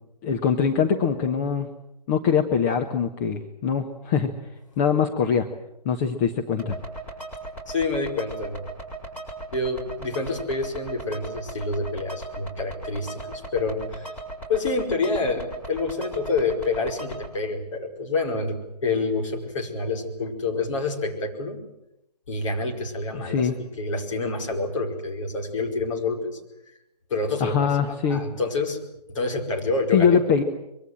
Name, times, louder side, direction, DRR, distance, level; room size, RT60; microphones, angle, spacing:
voice 1, 0.2-1.7 2.1-4.3 4.8-5.5 5.8-6.8 23.1-23.6 27.4-28.2 29.9-30.4, left 7 dB, 25° left, 4 dB, 1.3 m, -22 dB
sound 1, 6.6-17.3, right 2 dB, 10° left, 5.5 m, -38 dB
voice 2, 7.7-8.6 9.5-14.1 14.5-21.6 22.3-23.5 23.8-26.4 27.1-28.8 29.1-30.2, left 3 dB, 50° left, 2 dB, 5.1 m, -27 dB
24.0 x 23.0 x 7.8 m, 0.86 s
figure-of-eight pair, 135°, 21 cm